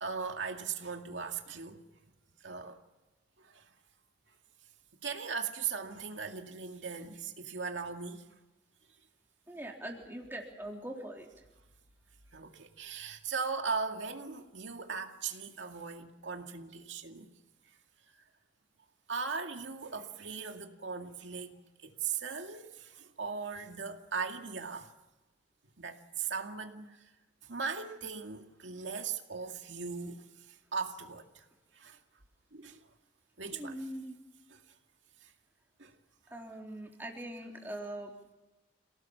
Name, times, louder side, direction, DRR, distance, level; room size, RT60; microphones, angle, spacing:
voice 1, 0.0-1.8 2.4-2.8 3.4-3.7 5.0-8.2 12.3-17.3 19.1-24.9 25.8-27.1 27.4-31.4 31.7-32.0 32.5-32.8 33.4-33.8 35.2-35.3 35.8-35.9, right 5 dB, 85° right, 2.2 m, -39 dB
voice 2, 9.5-11.3 33.5-34.2 36.3-38.1, right 1 dB, 10° right, 3.6 m, -42 dB
28.5 x 18.5 x 7.2 m
head